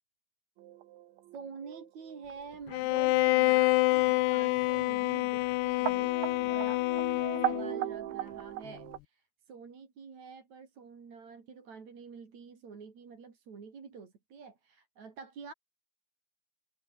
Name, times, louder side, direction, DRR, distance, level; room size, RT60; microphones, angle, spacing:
sound 1, 0.6-9.0, right 13 dB, 90° right, 3.8 m, -39 dB
voice 1, 1.3-15.5, right 5 dB, 40° right, 4.6 m, -48 dB
Bowed string instrument, 2.7-7.8, left 19 dB, 80° left, 2.6 m, -27 dB
omnidirectional pair, 5.2 m